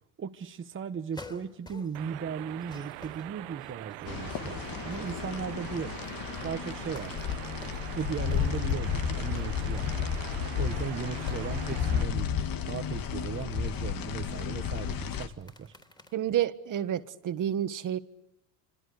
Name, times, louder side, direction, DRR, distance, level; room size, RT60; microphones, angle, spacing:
voice 1, 0.2-6.0 6.4-7.1 7.9-10.2 10.6-15.7, right 7 dB, 25° right, 1.3 m, -37 dB
sound 1, 1.1-2.2 2.5-4.4 4.7-5.4 5.7-10.6 11.2-11.6 11.9-12.3 14.7-16.1, left 2 dB, 10° left, 3.8 m, -51 dB
sound 2, 1.9-12.0, right 21 dB, 80° right, 1.0 m, -43 dB
sound 3, 4.1-15.3, left 8 dB, 50° left, 2.1 m, -32 dB
voice 2, 16.1-18.0, right 11 dB, 45° right, 1.6 m, -29 dB
26.5 x 26.5 x 6.5 m
supercardioid pair, 100°, 44 cm